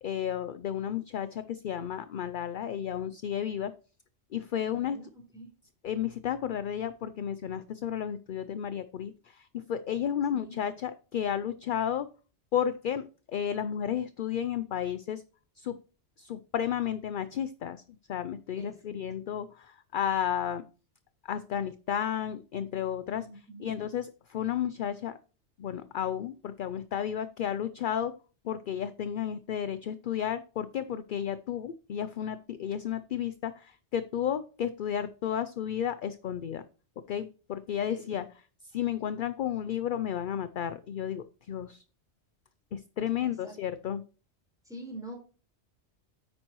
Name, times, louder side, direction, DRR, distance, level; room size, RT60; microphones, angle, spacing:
voice 1, 0.0-3.7 4.3-5.0 5.8-12.1 12.5-15.2 15.6-15.8 16.2-17.8 18.1-20.6 21.2-25.2 25.6-28.1 28.4-36.6 37.1-38.3 38.7-41.8 42.7-44.0, left 9 dB, 55° left, 12 dB, 0.6 m, -32 dB
voice 2, 4.7-5.1 5.3-5.5 10.3-10.6 18.6-19.0 23.2-23.8 37.9-38.0 43.2-43.5 44.7-45.1, right 1 dB, 5° right, -1 dB, 4.3 m, -45 dB
9.8 x 8.7 x 3.1 m, 0.37 s
omnidirectional pair, 1.2 m